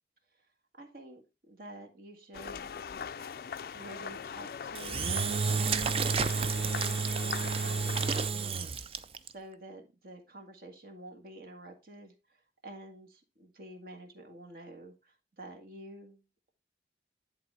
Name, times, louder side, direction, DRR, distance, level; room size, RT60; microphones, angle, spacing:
voice 1, 0.8-2.7 3.7-8.6 9.3-16.2, right 1 dB, 55° right, 2 dB, 1.7 m, -49 dB
sound 1, 2.3-8.3, left 6 dB, 55° left, 0.3 m, -41 dB
Engine / Drill, 4.7-9.3, right 5 dB, 30° right, 0.4 m, -30 dB
10.5 x 3.9 x 4.1 m, 0.28 s
head